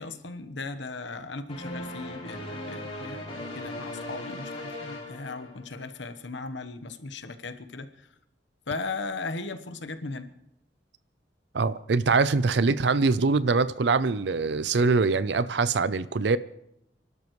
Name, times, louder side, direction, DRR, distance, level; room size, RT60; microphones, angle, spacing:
voice 1, 0.0-8.1 8.7-10.3, left 3 dB, 75° left, 1.1 m, -37 dB
sound 1, 1.5-6.0, left 1 dB, 35° left, 3.9 m, -38 dB
voice 2, 11.5-16.4, right 4 dB, 65° right, 0.5 m, -23 dB
29.5 x 12.0 x 3.2 m
head